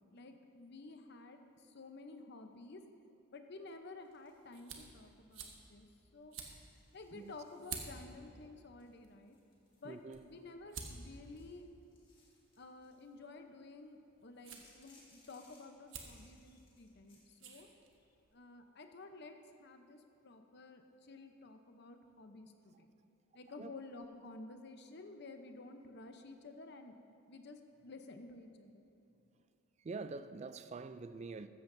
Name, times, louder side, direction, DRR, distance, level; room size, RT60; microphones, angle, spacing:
voice 1, 0.0-2.8 3.3-5.9 6.1-6.4 6.9-9.4 9.8-11.7 12.6-17.7 18.3-22.9 23.3-26.9 27.3-28.9, left 3 dB, 50° left, 0.8 m, -52 dB
sound 1, 3.6-18.3, right 5 dB, 60° right, 1.2 m, -53 dB
sound 2, 4.0-5.1 5.5-5.9 6.5-8.2 8.8-10.5 11.0-13.1 14.5-17.3, left 3 dB, 25° left, 2.1 m, -69 dB
voice 2, 9.8-10.2 23.6-23.7 29.8-31.5, right 4 dB, 30° right, 0.3 m, -45 dB
14.5 x 13.5 x 2.7 m
head